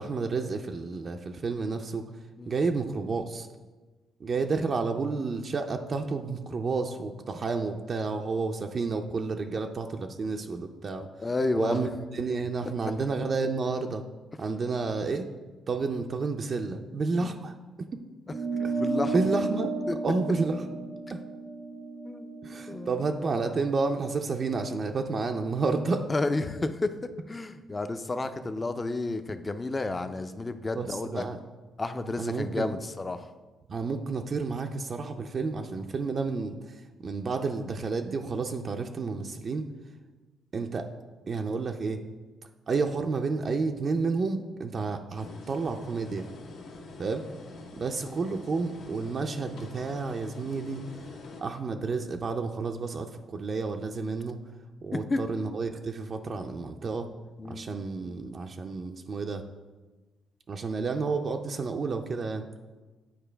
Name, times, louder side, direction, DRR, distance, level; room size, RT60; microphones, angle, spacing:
voice 1, 0.0-2.1 2.5-3.5 4.2-11.1 11.5-14.0 14.4-15.3 15.7-17.9 18.6-18.8 19.1-19.8 20.0-20.7 21.1-21.2 22.4-26.1 30.8-31.4 32.2-32.7 33.7-39.7 40.5-40.9 41.3-42.0 42.7-46.3 47.0-47.3 47.8-50.8 51.4-54.4 54.8-57.1 57.5-59.4 60.5-62.4, right 4 dB, 45° right, 5 dB, 0.4 m, -30 dB
voice 2, 11.2-11.8 17.2-17.3 18.5-19.2 19.9-20.0 22.0-22.3 22.7-22.9 26.1-31.2 31.8-33.3 54.9-55.2 57.4-57.6, left 2 dB, 25° left, 9 dB, 0.4 m, -31 dB
sound 1, 18.3-23.1, right 3 dB, 90° right, 1.2 m, -33 dB
sound 2, 45.1-51.4, left 2 dB, 75° left, 1.0 m, -45 dB
8.8 x 4.5 x 3.3 m, 1.2 s
cardioid pair, 90°, 0 cm